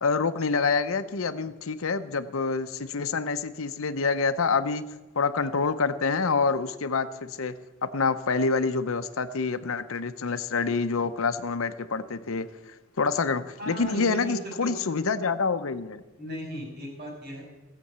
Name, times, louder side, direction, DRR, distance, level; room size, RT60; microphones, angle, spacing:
voice 1, 0.0-4.8 5.2-7.5 7.8-16.0, left 4 dB, 75° left, 11 dB, 0.7 m, -27 dB
voice 2, 13.6-14.7 16.2-17.4, right 1 dB, 50° right, 0 dB, 5.1 m, -37 dB
16.0 x 7.6 x 6.9 m, 1.1 s
head